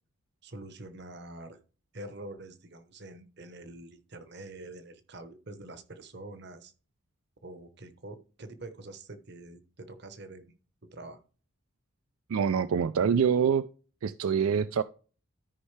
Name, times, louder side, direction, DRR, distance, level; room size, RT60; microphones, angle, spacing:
voice 1, 0.4-1.6 1.9-6.7 7.4-10.4 10.8-11.2, right 2 dB, 50° right, 10 dB, 1.1 m, -45 dB
voice 2, 12.3-13.6 14.0-14.8, right 7 dB, 80° right, 14 dB, 0.4 m, -25 dB
13.0 x 5.5 x 3.3 m, 0.38 s
head